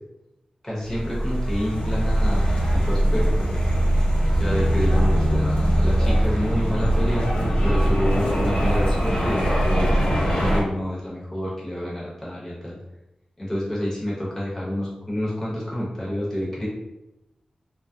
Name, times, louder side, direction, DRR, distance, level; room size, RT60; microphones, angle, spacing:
voice 1, 0.6-2.4 2.7-3.5 4.3-12.8 13.4-16.7, equal, 20° left, -6 dB, 0.8 m, -28 dB
sound 1, 0.8-10.6, right 1 dB, 55° left, 0.8 m, -21 dB
2.3 x 2.0 x 2.6 m, 0.93 s
wide cardioid pair, 115°, 2 cm